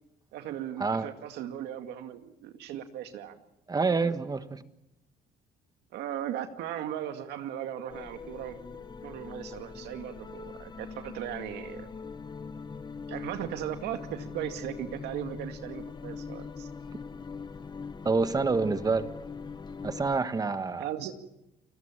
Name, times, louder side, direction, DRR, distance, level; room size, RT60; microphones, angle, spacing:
voice 1, 0.3-3.4 5.9-8.6 9.0-11.9 13.1-16.7 20.8-21.1, right 11 dB, 85° right, 7 dB, 2.2 m, -37 dB
voice 2, 3.7-4.6 18.0-19.1 19.8-20.9, right 4 dB, 20° right, 11 dB, 1.4 m, -27 dB
sound 1, 7.9-20.2, left 5 dB, 25° left, 1.2 m, -42 dB
29.5 x 19.5 x 7.4 m, 0.88 s
cardioid pair, 110°, 17 cm